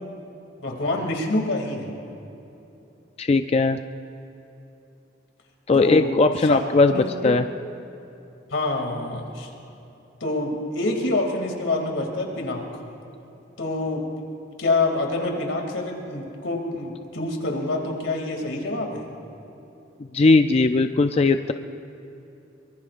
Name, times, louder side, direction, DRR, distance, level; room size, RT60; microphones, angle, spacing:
voice 1, 0.6-1.9 5.7-6.1 6.4-6.6 6.9-7.1 8.5-9.5 10.2-12.6 13.6-14.1 14.6-19.0, left 2 dB, 85° left, 2 dB, 2.6 m, -26 dB
voice 2, 3.2-3.8 5.7-7.4 20.1-21.5, left 3 dB, 35° left, 8 dB, 0.4 m, -19 dB
24.0 x 22.5 x 2.5 m, 2.9 s
head